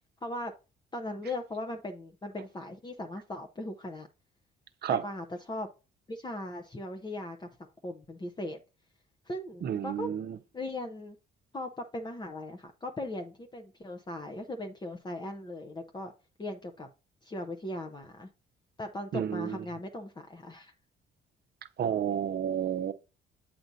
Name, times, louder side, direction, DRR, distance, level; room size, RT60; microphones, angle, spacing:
voice 1, 0.2-0.5 0.9-4.1 4.9-5.7 6.1-8.6 9.3-10.1 10.5-11.2 11.5-16.1 16.4-16.9 17.2-18.3 18.8-20.7, left 1 dB, 20° left, 0.7 m, -38 dB
voice 2, 9.6-10.4 19.1-19.6 21.8-22.9, right 9 dB, 55° right, 0.6 m, -30 dB
7.8 x 5.8 x 2.7 m
cardioid pair, 90°, 20 cm